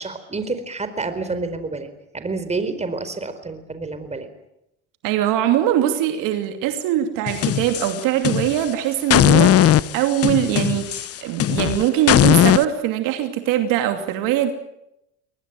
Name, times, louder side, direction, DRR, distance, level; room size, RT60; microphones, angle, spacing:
voice 1, 0.0-4.3, right 3 dB, 20° right, 10 dB, 4.3 m, -28 dB
voice 2, 5.0-14.5, right 11 dB, 70° right, 7 dB, 2.8 m, -22 dB
sound 1, 7.3-8.7 9.1-12.6, left 11 dB, 45° left, 1.0 m, -18 dB
23.0 x 19.5 x 9.2 m, 0.83 s
supercardioid pair, 85°, 34 cm